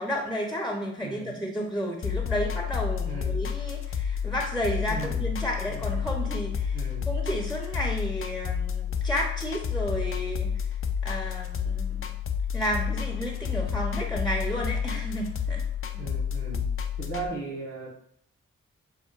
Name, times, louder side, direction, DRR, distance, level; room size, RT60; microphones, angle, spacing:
voice 1, 0.0-6.8 7.1-10.5 11.0-12.1 12.5-15.6, equal, ahead, 0 dB, 0.9 m, -32 dB
voice 2, 1.0-1.5 3.0-3.4 4.8-5.2 5.6-6.0 6.7-7.1 15.9-16.6 17.0-17.9, right 3 dB, 90° right, -5 dB, 1.4 m, -37 dB
sound 1, 2.0-17.3, left 7 dB, 45° left, 0.5 m, -30 dB
7.1 x 2.5 x 2.5 m, 0.68 s
supercardioid pair, 40°, 30 cm